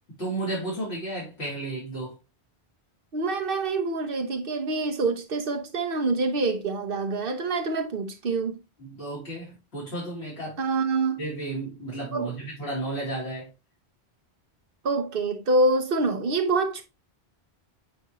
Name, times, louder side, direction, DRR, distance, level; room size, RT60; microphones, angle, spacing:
voice 1, 0.2-2.2 8.8-10.6 11.2-13.5, right 2 dB, 85° left, 3.9 m, -33 dB
voice 2, 3.1-8.6 10.6-11.2 12.1-12.3 14.8-16.8, right 3 dB, 60° right, 1.1 m, -26 dB
8.4 x 3.9 x 3.1 m
omnidirectional pair, 1.1 m